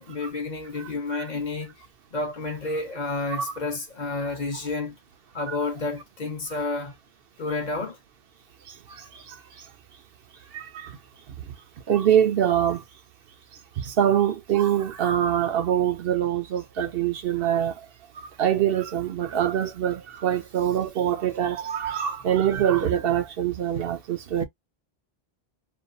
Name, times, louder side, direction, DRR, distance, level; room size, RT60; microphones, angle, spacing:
voice 1, 0.0-1.7 2.1-5.0 5.3-6.9 7.4-8.0, left 3 dB, 45° left, 0.8 m, -30 dB
voice 2, 0.8-1.2 3.4-3.5 5.5-5.6 8.9-9.4 10.5-11.0 11.9-12.8 13.8-17.8 18.2-24.4, right 10 dB, 70° right, 0.8 m, -24 dB
2.5 x 2.3 x 2.6 m
omnidirectional pair, 1.1 m